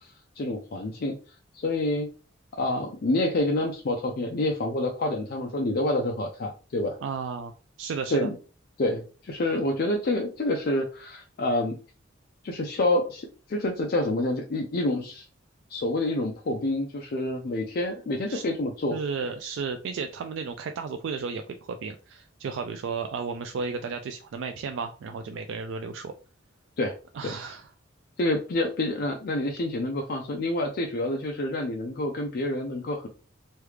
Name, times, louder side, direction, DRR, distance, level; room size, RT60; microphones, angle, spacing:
voice 1, 0.4-1.2 1.5-2.1 2.6-7.0 8.1-8.4 8.8-11.8 12.4-15.2 15.7-19.0 26.8-27.0 27.2-27.4 28.2-33.1, left 1 dB, 50° left, 1 dB, 0.4 m, -27 dB
voice 2, 7.0-7.5 7.8-8.3 18.3-18.4 18.9-26.1 27.1-27.7, right 5 dB, 65° right, 6 dB, 0.3 m, -33 dB
3.2 x 2.3 x 3.2 m, 0.36 s
head